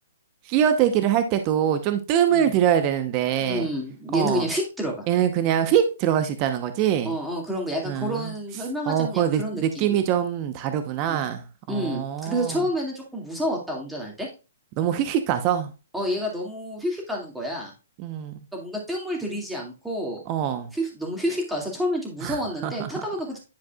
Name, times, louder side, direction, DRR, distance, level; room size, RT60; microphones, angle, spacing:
voice 1, 0.4-3.7 4.1-4.5 5.1-7.2 7.8-8.3 8.9-12.6 14.8-15.7 18.0-18.5 20.3-20.7 22.2-22.9, right 9 dB, 30° right, 0.9 m, -24 dB
voice 2, 3.4-5.0 7.0-10.0 11.1-11.2 11.7-14.3 15.9-17.7 18.5-20.2 20.7-23.4, equal, 5° right, 2.2 m, -29 dB
10.5 x 4.7 x 2.4 m
hypercardioid pair, 145°, 0 cm